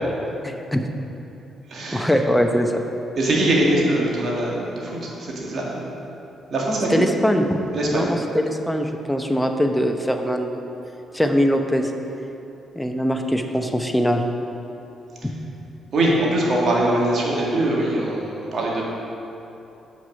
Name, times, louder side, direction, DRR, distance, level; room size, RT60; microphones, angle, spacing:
voice 1, 0.4-0.8 1.9-2.8 6.9-7.6 7.9-10.6 11.1-11.9 12.7-14.2 15.2-15.3, equal, 5° left, 4 dB, 0.8 m, -21 dB
voice 2, 1.7-2.1 3.2-6.0 6.5-7.0 7.7-8.1 15.9-18.8, right 1 dB, 60° right, -3 dB, 2.0 m, -22 dB
7.3 x 6.0 x 5.4 m, 2.9 s
supercardioid pair, 55°, 0 cm